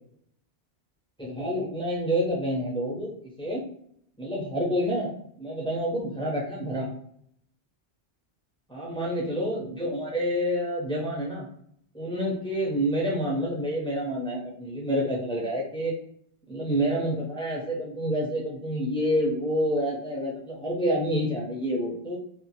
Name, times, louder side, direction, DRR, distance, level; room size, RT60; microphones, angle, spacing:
voice 1, 1.2-3.6 4.2-5.1 5.4-6.9 8.7-11.5 11.9-15.9 16.5-22.2, equal, 5° left, -4 dB, 0.4 m, -28 dB
2.7 x 2.1 x 2.8 m, 0.67 s
omnidirectional pair, 1.2 m